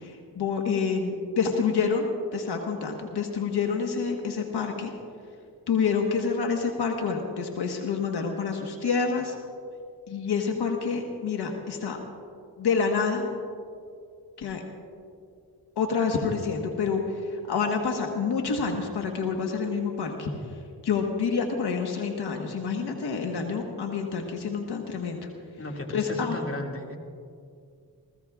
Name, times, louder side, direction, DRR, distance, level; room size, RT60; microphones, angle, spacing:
voice 1, 0.0-4.9 5.7-9.3 10.1-12.0 12.6-13.3 14.4-14.6 15.8-20.3 20.8-25.2 25.9-26.4, left 5 dB, 80° left, 3 dB, 1.4 m, -28 dB
voice 2, 25.6-27.0, left 2 dB, 35° left, 1 dB, 2.2 m, -35 dB
28.5 x 15.5 x 2.4 m, 2.3 s
cardioid pair, 65°, 39 cm